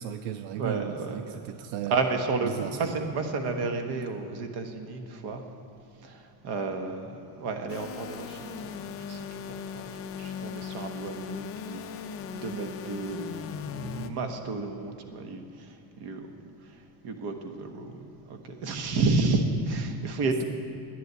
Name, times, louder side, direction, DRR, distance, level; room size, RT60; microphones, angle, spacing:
voice 1, 0.0-3.1, right 10 dB, 80° right, 9 dB, 0.6 m, -36 dB
voice 2, 0.6-1.4 1.9-5.4 6.0-8.8 9.1-9.8 10.2-11.8 12.3-15.4 16.0-16.3 17.0-20.4, right 3 dB, 55° right, 5 dB, 1.4 m, -31 dB
sound 1, 7.7-14.1, left 7 dB, 30° left, 0.5 m, -38 dB
11.0 x 10.0 x 8.1 m, 2.7 s
cardioid pair, 145°, 47 cm